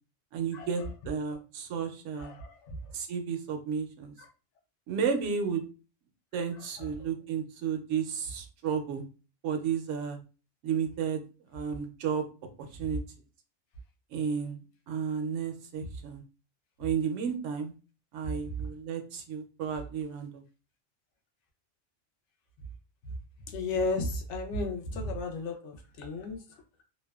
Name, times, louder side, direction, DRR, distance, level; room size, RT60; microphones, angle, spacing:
voice 1, 0.3-2.3 2.9-4.1 4.9-5.6 6.3-9.0 9.4-10.2 10.6-11.2 11.5-12.2 12.6-13.0 14.1-16.2 16.8-17.7 18.1-20.4, right 6 dB, 80° right, 5 dB, 0.9 m, -32 dB
voice 2, 2.2-2.9 4.2-4.3 6.8-6.9 12.8-12.9 23.5-26.6, left 2 dB, 75° left, 2 dB, 0.9 m, -34 dB
2.6 x 2.2 x 2.3 m, 0.34 s
omnidirectional pair, 1.2 m